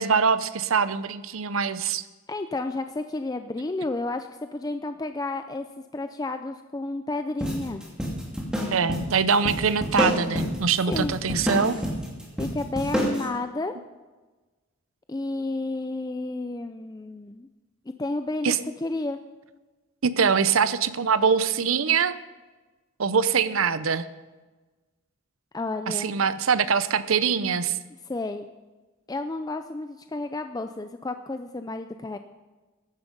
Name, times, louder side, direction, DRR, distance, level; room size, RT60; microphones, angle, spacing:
voice 1, 0.0-2.0 8.7-11.8 18.4-18.6 20.0-22.2 23.0-24.1 25.9-27.8, right 6 dB, 70° right, 14 dB, 0.7 m, -23 dB
voice 2, 2.3-5.7 5.9-7.8 10.9-11.2 12.4-13.7 15.1-17.5 18.0-18.5 18.8-19.2 25.5-26.2 28.1-28.5 29.1-32.2, left 2 dB, 20° left, 8 dB, 0.4 m, -31 dB
sound 1, 7.4-13.2, equal, 5° right, 2.7 m, -28 dB
15.0 x 11.0 x 5.2 m, 1.2 s
head